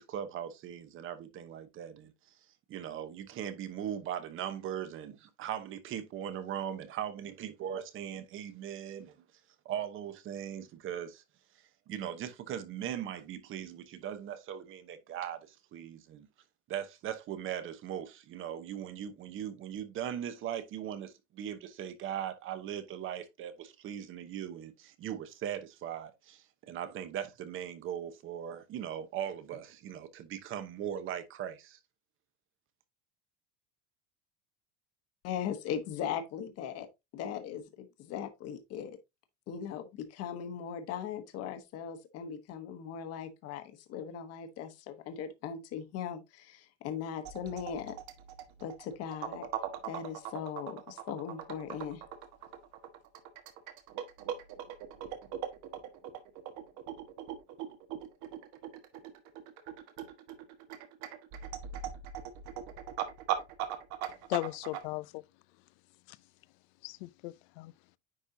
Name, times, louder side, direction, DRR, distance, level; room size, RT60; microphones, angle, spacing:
voice 1, 0.0-2.1 2.7-9.2 9.6-11.2 11.9-16.3 16.7-31.8, right 10 dB, 35° right, 1.0 m, -39 dB
voice 2, 35.2-36.9 37.1-39.0 39.5-47.9 48.6-49.5 49.8-52.0, left 8 dB, 45° left, 1.2 m, -39 dB
sound 1, 47.2-64.8, right 10 dB, 55° right, 1.4 m, -40 dB
voice 3, 64.3-65.2 66.1-66.2 66.8-67.7, left 20 dB, 75° left, 0.6 m, -37 dB
9.9 x 4.2 x 2.7 m
cardioid pair, 160°, 35 cm